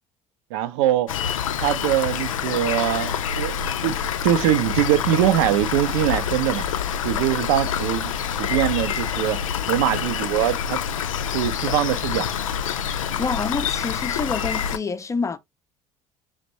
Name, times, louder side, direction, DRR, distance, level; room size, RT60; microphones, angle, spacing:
voice 1, 0.5-1.1 1.6-4.0 4.2-6.7 7.0-8.1 8.4-9.4 9.7-10.8 11.3-12.3, right 12 dB, 60° right, 0.6 m, -22 dB
Rain, 1.1-14.8, left 8 dB, 75° left, 0.4 m, -26 dB
voice 2, 13.2-15.4, left 4 dB, 15° left, 0.5 m, -27 dB
5.9 x 2.2 x 2.7 m
figure-of-eight pair, 60°, 17 cm